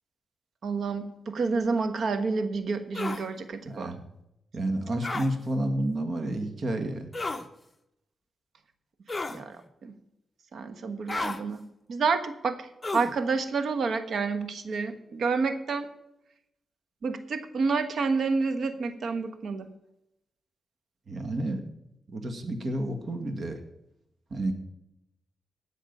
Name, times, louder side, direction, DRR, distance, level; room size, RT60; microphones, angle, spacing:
voice 1, 0.6-4.0 9.3-10.0 10.5-15.9 17.0-19.7, right 4 dB, 65° right, 9 dB, 1.2 m, -29 dB
sound 1, 2.9-3.2 5.0-5.3 7.1-7.5 9.1-9.4 11.1-11.4 12.8-13.1, left 3 dB, 20° left, 1.0 m, -32 dB
voice 2, 3.6-4.0 4.5-7.1 21.1-21.6 22.1-23.6 24.3-24.5, right 1 dB, 50° right, 6 dB, 1.8 m, -30 dB
17.0 x 6.3 x 5.4 m, 0.83 s
cardioid pair, 95°, 0 cm